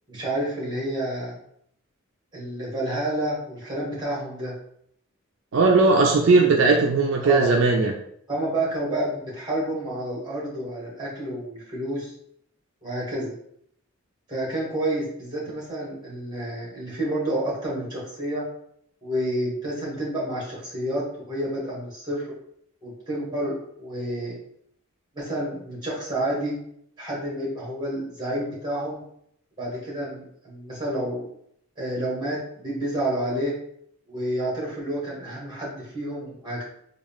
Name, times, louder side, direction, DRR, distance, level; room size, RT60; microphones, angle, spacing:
voice 1, 0.1-1.4 2.3-4.5 7.2-7.6 8.3-12.1 12.8-13.3 14.3-18.4 19.0-22.3 22.8-24.4 25.1-26.6 27.0-29.0 29.6-31.3 31.8-33.6 34.1-36.6, right 1 dB, 20° right, -5 dB, 1.4 m, -29 dB
voice 2, 5.5-7.9, right 3 dB, 65° right, 1 dB, 0.4 m, -18 dB
3.6 x 2.4 x 3.5 m, 0.70 s
head